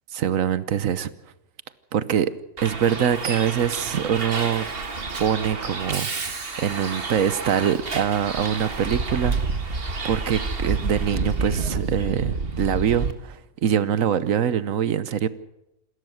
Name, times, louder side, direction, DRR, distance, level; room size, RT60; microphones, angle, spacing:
voice 1, 0.1-1.1 1.9-2.3 2.6-4.7 5.2-6.1 6.6-9.4 9.6-15.3, right 8 dB, 90° right, 16 dB, 1.3 m, -24 dB
Bus, 2.6-13.1, right 3 dB, 45° right, 1.8 m, -29 dB
27.5 x 13.0 x 8.0 m, 0.87 s
omnidirectional pair, 1.4 m